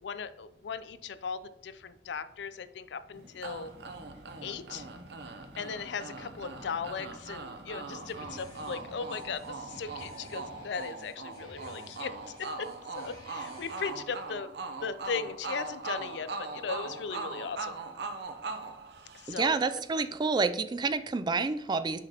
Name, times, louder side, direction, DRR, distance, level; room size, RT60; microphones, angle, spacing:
voice 1, 0.0-3.7 4.4-4.9 5.6-14.5 14.8-17.8 19.2-19.5 19.9-20.0, left 5 dB, 70° left, 13 dB, 0.4 m, -38 dB
sound 1, 3.0-11.1, equal, 85° right, 2.4 m, -52 dB
sound 2, 3.4-19.6, right 3 dB, 65° right, 0.6 m, -41 dB
sound 3, 7.8-14.4, left 1 dB, 20° left, 2.2 m, -54 dB
voice 2, 19.3-22.0, right 4 dB, 25° right, 12 dB, 0.3 m, -29 dB
7.6 x 5.1 x 2.9 m, 0.75 s
head